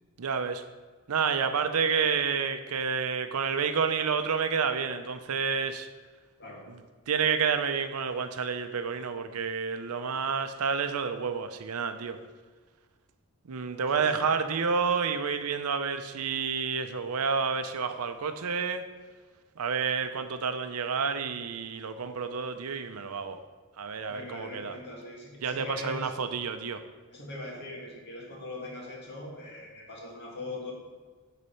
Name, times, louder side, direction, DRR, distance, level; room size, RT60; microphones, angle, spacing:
voice 1, 0.2-0.6 1.1-5.9 7.1-12.2 13.5-18.9 19.6-23.4 23.8-24.7 25.4-26.8, right 6 dB, 80° right, 9 dB, 0.6 m, -29 dB
voice 2, 6.4-6.7 13.9-14.3 24.1-26.1 27.1-30.7, left 2 dB, 50° left, -2 dB, 1.9 m, -41 dB
8.3 x 4.1 x 5.6 m, 1.4 s
head